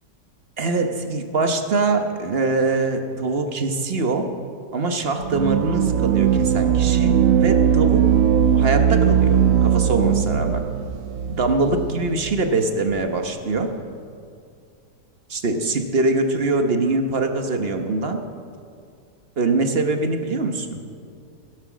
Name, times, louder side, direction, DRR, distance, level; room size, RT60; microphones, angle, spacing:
voice 1, 0.6-4.2 4.7-8.0 8.5-10.6 11.3-13.7 15.3-18.2 19.4-20.8, right 3 dB, 40° right, 5 dB, 1.1 m, -23 dB
sound 1, 5.2-12.4, right 9 dB, 70° right, 0.8 m, -19 dB
17.0 x 11.5 x 6.2 m, 2.4 s
omnidirectional pair, 1.9 m